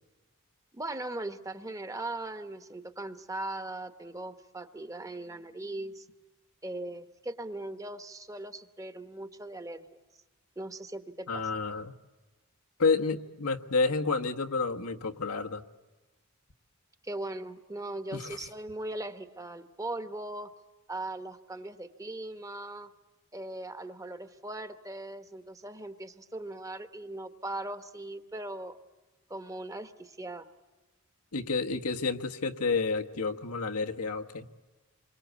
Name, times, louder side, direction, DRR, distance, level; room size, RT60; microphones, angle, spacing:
voice 1, 0.7-6.1 6.6-9.9 10.6-11.5 17.0-20.5 20.9-22.9 23.3-28.8 29.3-30.5, right 2 dB, 15° right, 10 dB, 1.1 m, -39 dB
voice 2, 11.3-11.9 12.8-15.6 18.1-18.4 31.3-34.5, left 4 dB, 85° left, 4 dB, 1.3 m, -30 dB
27.5 x 23.5 x 8.1 m, 1.1 s
head